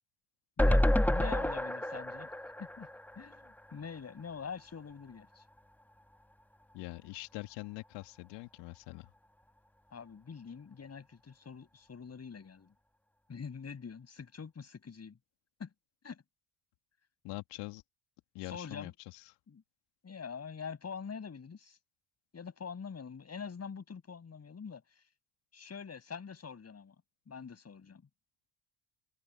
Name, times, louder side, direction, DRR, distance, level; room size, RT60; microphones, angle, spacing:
voice 1, 0.6-2.9 3.2-5.4 9.9-12.7 13.3-15.2 15.6-15.7 16.0-16.2 18.4-18.9 19.5-19.6 20.0-21.8 22.3-25.0 25.5-26.9 27.3-28.0, left 6 dB, 35° left, 7.9 m, -45 dB
sound 1, 0.6-3.8 4.2-4.3 4.5-4.6, left 1 dB, 5° left, 1.5 m, -29 dB
voice 2, 6.7-9.1 17.2-17.8 18.3-19.3, left 23 dB, 70° left, 2.8 m, -44 dB
hypercardioid pair, 60°, 44 cm